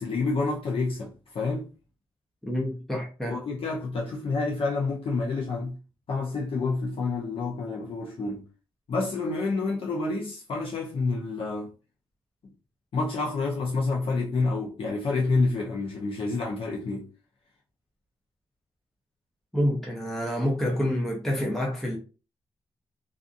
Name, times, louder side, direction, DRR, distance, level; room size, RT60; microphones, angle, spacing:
voice 1, 0.0-1.7 3.2-5.7 6.1-8.5 8.9-11.7 12.9-17.1, left 3 dB, 60° left, 0.5 m, -28 dB
voice 2, 2.5-3.4 19.5-22.0, equal, 5° left, 0.6 m, -27 dB
2.6 x 2.4 x 2.4 m
wide cardioid pair, 125°, 10 cm